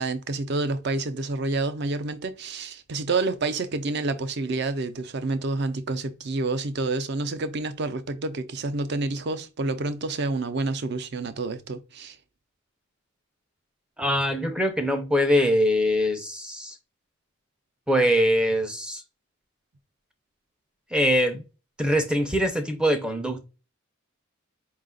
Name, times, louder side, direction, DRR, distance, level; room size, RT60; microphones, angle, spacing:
voice 1, 0.0-12.2, right 3 dB, 55° right, 0.5 m, -28 dB
voice 2, 14.0-16.8 17.9-19.0 20.9-21.4 21.8-23.4, equal, 5° right, 0.5 m, -23 dB
4.8 x 2.4 x 3.7 m
head